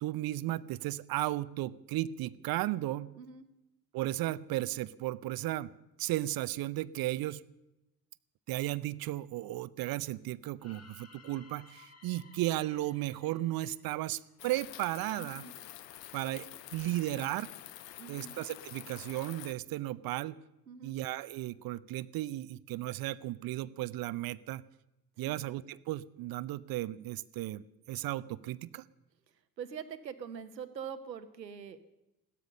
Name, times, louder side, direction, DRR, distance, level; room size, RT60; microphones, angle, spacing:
voice 1, 0.0-3.1 3.9-5.7 6.0-7.4 8.5-15.4 16.1-16.5 16.7-17.5 18.1-20.4 20.8-24.6 25.2-28.8, right 16 dB, 45° right, 18 dB, 0.7 m, -35 dB
voice 2, 3.1-3.5 15.2-15.5 18.0-18.3 20.7-21.0 25.2-25.3 29.6-31.8, right 7 dB, 85° right, 11 dB, 1.1 m, -43 dB
sound 1, 10.6-14.7, left 4 dB, 30° left, 2.1 m, -58 dB
sound 2, 14.4-19.5, left 13 dB, 75° left, 0.8 m, -48 dB
17.0 x 13.0 x 6.6 m, 0.91 s
figure-of-eight pair, 55°, 49 cm